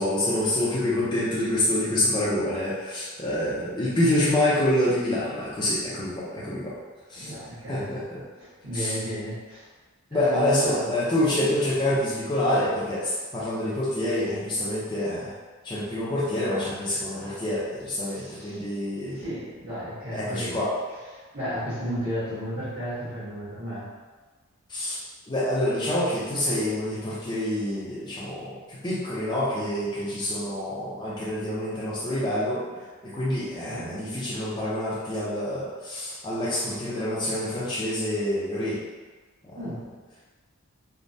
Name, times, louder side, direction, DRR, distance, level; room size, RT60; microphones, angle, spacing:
voice 1, 0.0-6.7 7.1-7.3 7.7-8.2 8.7-9.0 10.1-15.3 15.6-19.2 20.1-20.7 24.7-25.0 25.3-32.7 33.0-38.8 39.4-39.6, left 1 dB, 20° left, -9 dB, 0.5 m, -27 dB
voice 2, 7.1-7.9 8.4-9.7 10.1-10.9 17.1-17.4 18.0-18.6 19.1-20.6 21.1-23.9 33.7-33.9 34.3-34.4 39.5-39.9, equal, 45° right, -16 dB, 1.4 m, -34 dB
3.3 x 2.1 x 2.6 m, 1.3 s
head